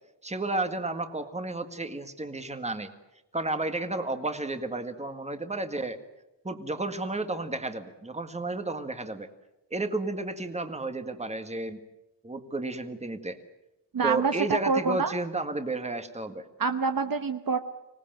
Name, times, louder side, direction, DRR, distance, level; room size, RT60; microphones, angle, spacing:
voice 1, 0.2-2.9 3.3-6.0 6.4-9.3 9.7-11.8 12.2-13.4 14.0-16.5, right 2 dB, 15° right, 8 dB, 1.8 m, -32 dB
voice 2, 13.9-14.3 14.6-15.1 16.6-17.6, right 5 dB, 50° right, 8 dB, 1.1 m, -26 dB
25.0 x 19.0 x 9.1 m, 0.94 s
wide cardioid pair, 145°, 44 cm